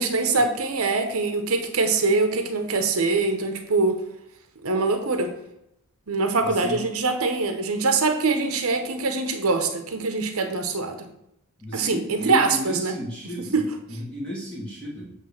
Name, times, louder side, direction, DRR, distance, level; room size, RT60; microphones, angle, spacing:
voice 1, 0.0-4.0 4.6-5.3 6.1-11.1 11.7-12.9 13.5-13.7, right 3 dB, 65° right, 6 dB, 0.9 m, -23 dB
voice 2, 6.4-6.8 11.6-13.6 13.9-15.1, equal, 5° left, -5 dB, 1.3 m, -34 dB
7.7 x 3.3 x 6.4 m, 0.83 s
head